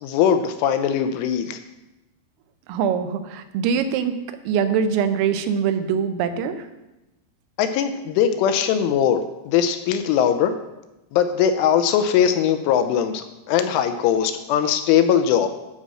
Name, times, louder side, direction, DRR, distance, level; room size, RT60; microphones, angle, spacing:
voice 1, 0.0-1.6 7.6-10.5 11.1-15.5, left 8 dB, 80° left, 8 dB, 3.0 m, -20 dB
voice 2, 2.7-4.2 4.5-6.7, right 7 dB, 85° right, 9 dB, 3.4 m, -23 dB
12.0 x 5.1 x 7.4 m, 0.99 s
omnidirectional pair, 5.8 m